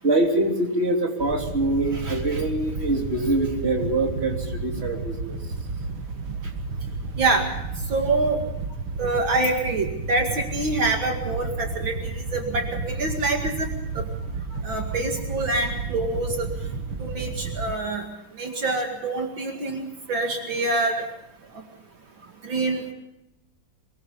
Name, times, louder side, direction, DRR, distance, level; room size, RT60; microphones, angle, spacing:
voice 1, 0.0-5.4, right 2 dB, 30° right, 1 dB, 3.5 m, -24 dB
Wind / Boat Water vehicle, 1.2-17.7, right 4 dB, 80° right, 2.2 m, -32 dB
voice 2, 7.9-8.4 9.0-13.7 13.9-14.0 14.6-16.5 17.0-18.0 18.4-21.0 22.4-22.9, right 2 dB, 60° right, 3 dB, 2.9 m, -26 dB
23.5 x 21.5 x 5.5 m, 0.86 s
omnidirectional pair, 2.4 m